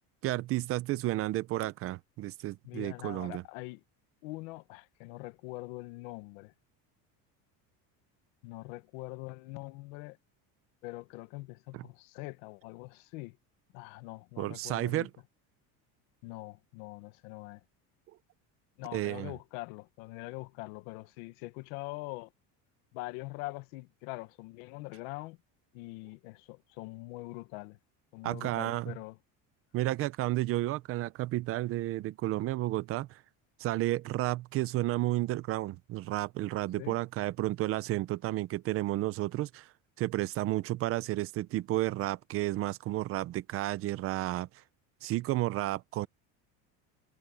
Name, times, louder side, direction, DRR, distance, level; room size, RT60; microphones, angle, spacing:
voice 1, 0.2-3.4 11.7-11.8 14.4-15.1 18.9-19.3 28.2-28.9 29.7-33.2 33.6-39.7 40.0-44.5 45.0-46.1, right 16 dB, 35° right, 0.5 m, -32 dB
voice 2, 2.6-3.8 4.2-6.5 8.4-10.2 10.8-13.4 13.7-15.1 16.2-17.6 18.8-22.3 22.9-25.4 25.7-27.8 28.1-29.2 36.8-37.0, left 22 dB, 90° left, 1.3 m, -43 dB
cardioid pair, 170°, 40 cm